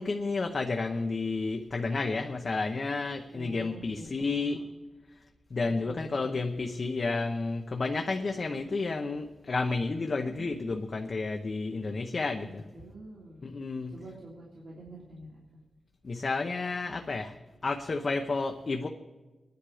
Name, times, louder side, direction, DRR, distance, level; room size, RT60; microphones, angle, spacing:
voice 1, 0.0-4.6 5.5-12.6 13.4-14.0 16.0-17.4 17.6-18.9, left 3 dB, 45° left, 3 dB, 0.8 m, -31 dB
voice 2, 3.3-4.6 5.6-6.2 10.1-10.5 12.4-13.4 13.9-15.4, right 1 dB, 65° right, -5 dB, 3.1 m, -47 dB
23.5 x 10.5 x 5.0 m, 1.2 s
wide cardioid pair, 125°, 0 cm